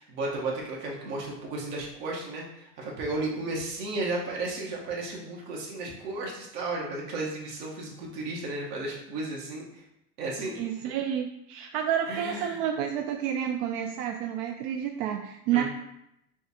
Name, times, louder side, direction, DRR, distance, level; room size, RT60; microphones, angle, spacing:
voice 1, 0.0-9.8 10.2-10.6 12.1-12.6 15.5-15.6, right 2 dB, 80° right, -2 dB, 1.4 m, -34 dB
voice 2, 10.6-15.6, right 9 dB, 65° right, 5 dB, 0.6 m, -30 dB
6.3 x 2.4 x 2.9 m, 0.81 s
hypercardioid pair, 95°, 48 cm